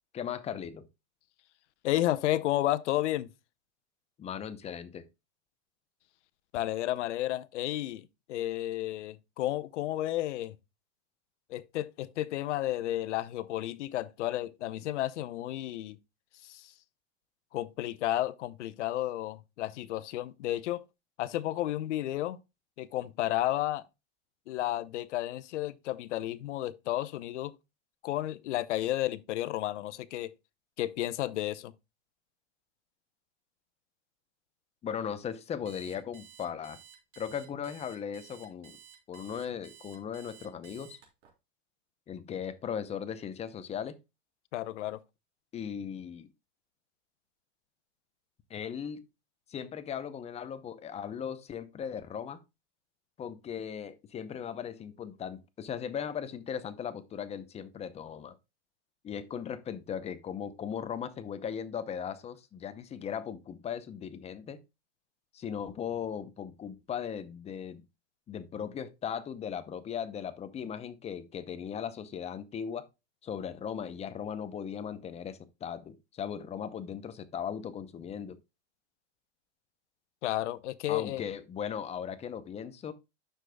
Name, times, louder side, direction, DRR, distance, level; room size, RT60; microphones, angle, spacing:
voice 1, 0.1-0.9 4.2-5.0 34.8-36.8 37.2-38.8 39.1-41.0 42.1-44.0 45.5-46.3 48.5-49.0 49.5-52.4 53.2-58.4 59.0-64.6 65.3-67.8 68.3-72.9 73.2-78.4 80.9-82.9, left 8 dB, 20° left, 0.6 m, -38 dB
voice 2, 1.8-3.3 6.5-10.6 11.5-16.0 16.4-16.7 17.5-20.8 21.2-22.4 22.8-23.8 24.5-27.5 28.0-30.3 30.8-31.7 44.5-45.0 80.2-81.2, left 14 dB, 80° left, 0.8 m, -32 dB
Alarm, 35.7-41.3, right 8 dB, 80° right, 3.6 m, -54 dB
9.7 x 6.8 x 2.2 m
supercardioid pair, 135°, 35 cm